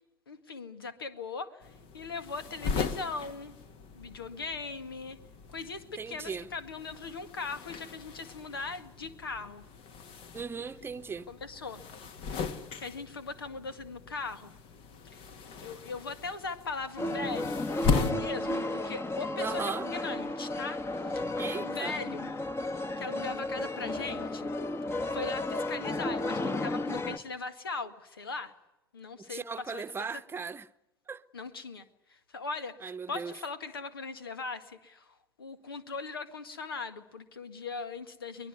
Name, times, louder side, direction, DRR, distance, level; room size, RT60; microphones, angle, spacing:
voice 1, 0.3-3.5 3.9-5.2 5.5-9.6 11.3-11.8 12.4-14.5 15.1-15.2 15.6-17.6 17.9-22.3 23.0-24.5 25.1-28.5 28.9-29.8 30.1-30.2 31.3-38.5, left 4 dB, 80° left, 2.0 m, -39 dB
sound 1, 1.6-18.1, left 5 dB, 50° left, 2.2 m, -38 dB
voice 2, 6.0-6.5 10.3-11.3 19.4-19.9 21.4-22.0 29.3-30.7 31.1-31.2 32.8-33.3, right 5 dB, 20° right, 1.0 m, -37 dB
sound 2, 17.0-27.2, left 2 dB, 20° left, 1.6 m, -33 dB
23.5 x 20.5 x 9.6 m
figure-of-eight pair, 70°, 12 cm